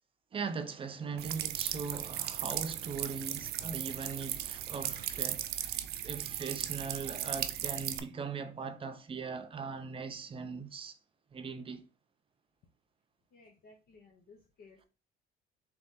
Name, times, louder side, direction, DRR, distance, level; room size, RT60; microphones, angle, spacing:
voice 1, 0.3-11.0 11.3-11.8, right 5 dB, 30° right, 0.6 m, -40 dB
sound 1, 1.2-8.0, right 12 dB, 75° right, 0.5 m, -37 dB
voice 2, 13.3-14.9, left 3 dB, 65° left, 0.9 m, -58 dB
3.8 x 3.0 x 3.6 m
cardioid pair, 110°, 17 cm